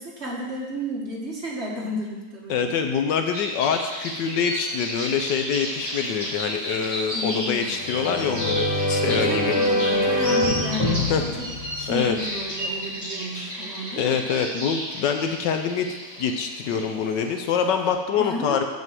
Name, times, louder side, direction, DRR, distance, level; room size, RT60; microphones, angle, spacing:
voice 1, 0.0-2.7 7.1-7.7 9.0-11.5 11.8-14.2 18.2-18.6, equal, 35° right, -3 dB, 1.8 m, -32 dB
voice 2, 2.5-9.5 11.1-11.2 11.9-12.2 14.0-15.9 16.2-18.6, left 7 dB, 70° left, 6 dB, 1.3 m, -25 dB
sound 1, 3.3-17.9, equal, 10° left, 3.8 m, -33 dB
sound 2, 7.7-12.5, left 1 dB, 30° left, 0.6 m, -25 dB
7.5 x 6.0 x 7.5 m, 1.2 s
omnidirectional pair, 2.1 m